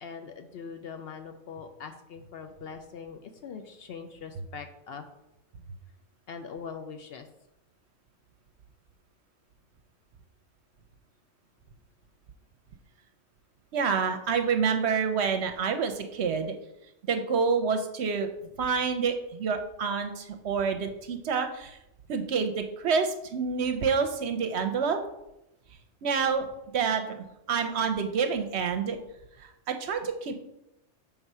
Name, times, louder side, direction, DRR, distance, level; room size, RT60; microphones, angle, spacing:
voice 1, 0.0-5.0 6.3-7.3, left 6 dB, 60° left, 6 dB, 0.7 m, -42 dB
voice 2, 13.7-16.5 17.1-18.3 18.6-21.8 22.1-25.0 26.0-26.5 26.7-29.0 29.4-30.3, right 5 dB, 65° right, 7 dB, 0.8 m, -28 dB
6.0 x 3.6 x 5.4 m, 0.87 s
omnidirectional pair, 1.3 m